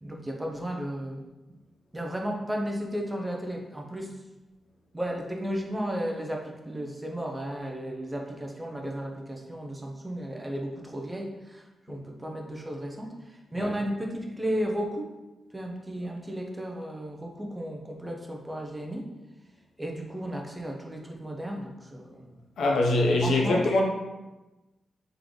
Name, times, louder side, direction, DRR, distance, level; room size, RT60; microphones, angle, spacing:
voice 1, 0.0-1.3 1.9-4.2 4.9-15.1 15.5-19.1 19.8-22.3 23.2-23.7, equal, 10° right, 1 dB, 0.6 m, -34 dB
voice 2, 22.6-23.8, left 2 dB, 80° left, 0 dB, 0.7 m, -23 dB
3.7 x 3.6 x 3.1 m, 1.1 s
wide cardioid pair, 120°, 0 cm